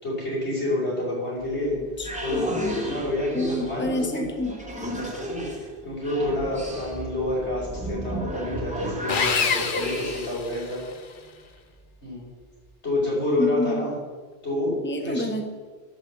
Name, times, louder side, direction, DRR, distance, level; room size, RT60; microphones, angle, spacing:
voice 1, 0.0-1.8 2.2-4.1 4.9-5.5 5.8-10.8 12.0-12.3 12.8-13.9 14.4-14.8 15.0-15.2, left 1 dB, 85° left, -5 dB, 5.3 m, -28 dB
sound 1, 1.4-10.5, equal, 5° right, 2.3 m, -34 dB
voice 2, 2.0-2.4 3.3-4.5 13.4-13.9 14.8-15.4, left 2 dB, 10° left, 3 dB, 1.2 m, -28 dB
Sawing, 9.1-11.0, left 5 dB, 50° left, 1.0 m, -26 dB
10.5 x 8.1 x 8.0 m, 1.4 s
omnidirectional pair, 1.1 m